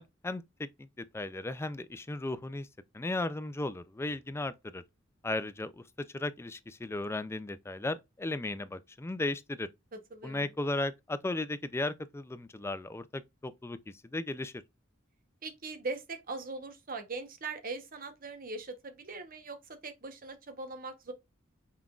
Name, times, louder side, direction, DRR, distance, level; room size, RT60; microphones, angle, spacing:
voice 1, 0.0-2.7 2.9-4.8 5.2-5.8 6.1-9.7 10.2-13.8 14.1-14.5, left 2 dB, 10° left, 0.3 m, -36 dB
voice 2, 9.9-10.5 15.4-21.1, right 3 dB, 45° right, 0.9 m, -41 dB
5.7 x 3.6 x 2.4 m
head